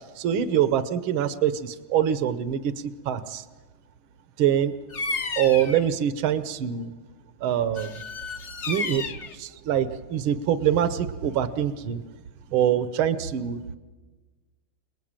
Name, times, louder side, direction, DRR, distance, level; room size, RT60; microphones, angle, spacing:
voice 1, 0.2-3.4 4.4-4.7 5.4-6.9 7.4-8.0 8.7-9.0 9.3-12.0 12.5-13.6, right 10 dB, 80° right, 12 dB, 1.9 m, -24 dB
Bird vocalization bird call bird song, 4.9-5.9 7.7-9.4, left 4 dB, 45° left, 1.1 m, -32 dB
28.5 x 20.0 x 8.9 m, 1.3 s
omnidirectional pair, 2.2 m